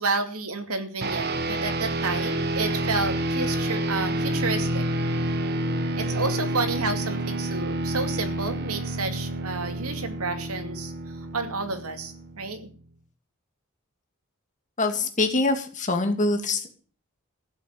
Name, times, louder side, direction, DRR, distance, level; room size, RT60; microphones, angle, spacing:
voice 1, 0.0-4.9 6.0-10.9 11.3-12.7, right 3 dB, 85° right, 7 dB, 2.5 m, -30 dB
sound 1, 1.0-12.7, right 1 dB, 45° right, 1.4 m, -29 dB
voice 2, 14.8-16.7, left 2 dB, 35° left, 5 dB, 2.5 m, -24 dB
15.0 x 7.6 x 8.5 m, 0.41 s
head